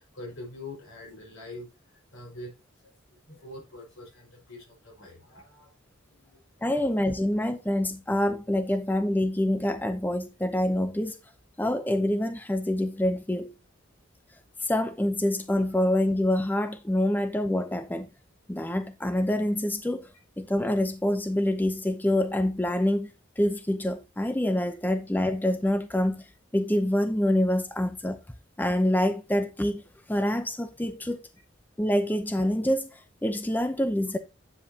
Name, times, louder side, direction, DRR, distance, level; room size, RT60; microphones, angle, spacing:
voice 1, 0.0-1.7 2.1-2.5 2.8-2.9 3.3-5.8 6.1-6.4, left 1 dB, 85° left, 5.0 m, -44 dB
voice 2, 6.6-11.2 11.6-13.5 14.6-18.1 18.5-20.1 20.4-23.1 23.4-26.2 26.5-28.2 28.6-29.8 30.1-31.2 31.8-34.2, left 1 dB, 10° left, 0.6 m, -26 dB
10.5 x 7.2 x 2.8 m
head